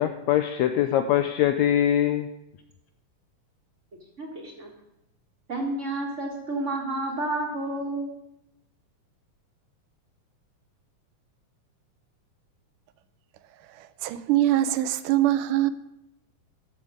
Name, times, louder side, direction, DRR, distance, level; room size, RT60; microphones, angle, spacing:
voice 1, 0.0-2.3, left 11 dB, 80° left, 1.6 m, -22 dB
voice 2, 4.2-4.7 5.5-8.1, right 2 dB, 35° right, 1.3 m, -30 dB
voice 3, 13.7-15.7, right 13 dB, 85° right, 2.1 m, -23 dB
13.5 x 6.6 x 4.9 m
omnidirectional pair, 3.7 m